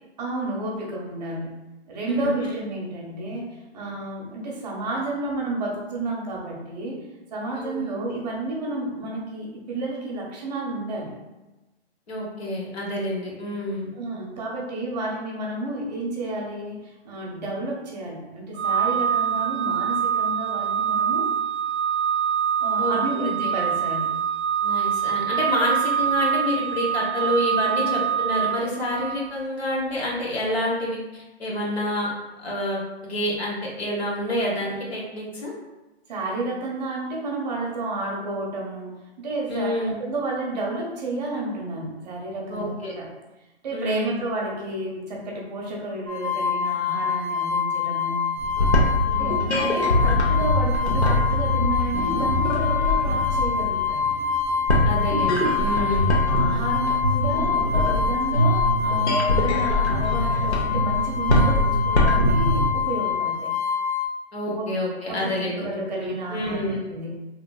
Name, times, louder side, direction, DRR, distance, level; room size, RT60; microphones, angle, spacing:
voice 1, 0.2-1.6 1.9-7.0 7.3-11.1 13.9-21.4 22.6-24.1 36.1-43.0 43.6-48.2 49.2-54.0 55.7-56.0 56.3-63.5 64.5-64.7 65.1-66.6 66.9-67.3, right 2 dB, 40° right, -3 dB, 0.7 m, -31 dB
voice 2, 7.5-8.0 12.1-13.9 22.8-23.3 24.6-32.1 32.4-35.5 39.5-40.0 42.5-43.0 43.7-44.2 49.1-49.5 54.8-56.1 64.3-65.7 65.9-66.8, left 1 dB, 70° left, -4 dB, 1.2 m, -28 dB
Organ, 18.5-29.3, right 8 dB, 80° right, 0.5 m, -24 dB
sound 1, 46.1-64.1, left 6 dB, 20° right, 0.3 m, -26 dB
sound 2, 48.4-62.7, left 1 dB, 85° left, 0.8 m, -23 dB
2.9 x 2.5 x 2.3 m, 1.1 s
figure-of-eight pair, 135°, 33 cm